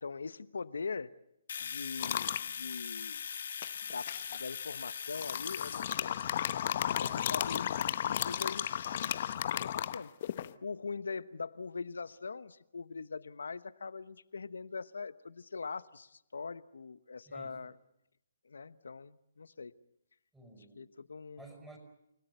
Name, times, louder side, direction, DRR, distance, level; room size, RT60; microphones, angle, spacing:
voice 1, 0.0-1.2 1.6-3.2 3.8-6.5 7.0-10.1 10.6-17.7 18.4-19.7 20.8-21.5, left 4 dB, 80° left, 15 dB, 1.1 m, -42 dB
Domestic sounds home sounds, 1.5-9.3, left 7 dB, 65° left, 2.4 m, -42 dB
sound 1, 2.0-2.4 3.6-4.4 5.1-10.5, left 10 dB, 50° left, 0.9 m, -34 dB
voice 2, 17.3-17.6 20.3-20.9 21.4-21.8, right 2 dB, 5° right, 3 dB, 5.4 m, -53 dB
30.0 x 17.5 x 8.1 m, 0.83 s
hypercardioid pair, 145°, 0 cm